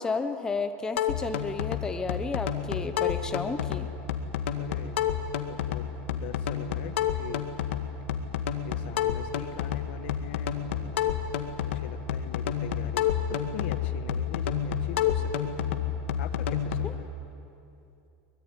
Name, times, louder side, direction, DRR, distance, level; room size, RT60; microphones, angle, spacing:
voice 1, 0.0-3.9 16.8-16.9, left 4 dB, 10° left, 7 dB, 1.0 m, -32 dB
sound 1, 1.0-16.9, left 8 dB, 90° left, 1.9 m, -29 dB
voice 2, 4.6-5.1 5.5-7.5 8.6-11.0 11.6-15.7 16.2-17.1, left 11 dB, 65° left, 10 dB, 1.5 m, -42 dB
24.0 x 21.0 x 9.9 m, 2.7 s
supercardioid pair, 160°, 6 cm